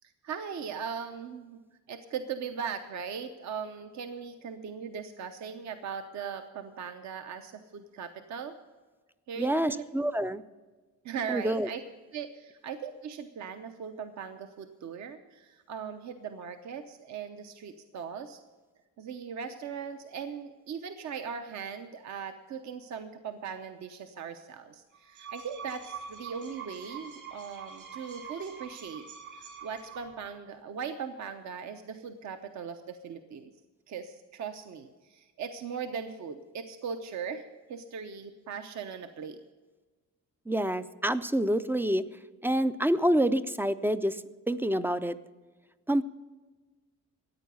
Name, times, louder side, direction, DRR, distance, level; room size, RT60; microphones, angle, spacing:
voice 1, 0.2-1.6 1.9-8.5 9.3-9.8 11.0-11.8 12.1-18.4 19.0-29.1 29.4-33.5 33.9-39.4, right 6 dB, 60° right, 7 dB, 0.9 m, -39 dB
voice 2, 9.4-10.4 11.3-11.7 40.5-42.0 42.4-45.2 45.9-46.0, right 1 dB, 5° right, 13 dB, 0.3 m, -27 dB
sound 1, 24.9-30.3, right 5 dB, 75° right, 4.9 m, -45 dB
14.0 x 9.4 x 6.8 m, 1.3 s
cardioid pair, 160°, 32 cm